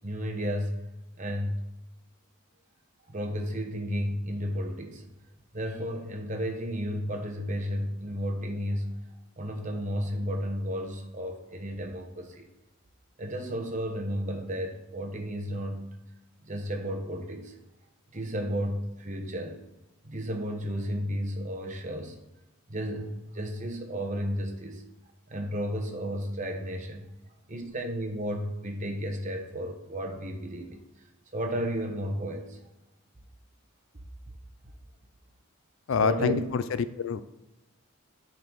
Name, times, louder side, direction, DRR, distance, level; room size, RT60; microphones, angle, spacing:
voice 1, 0.0-0.8 1.2-1.6 3.1-5.0 5.5-8.9 9.4-12.5 13.2-15.9 16.4-17.5 18.1-19.6 20.0-22.2 22.7-24.8 25.3-27.1 27.5-30.8 31.3-32.6 36.0-36.5, equal, 35° right, 3 dB, 1.0 m, -33 dB
voice 2, 35.9-36.6 37.0-37.2, left 5 dB, 60° left, 13 dB, 0.4 m, -26 dB
10.0 x 4.0 x 4.6 m, 0.98 s
head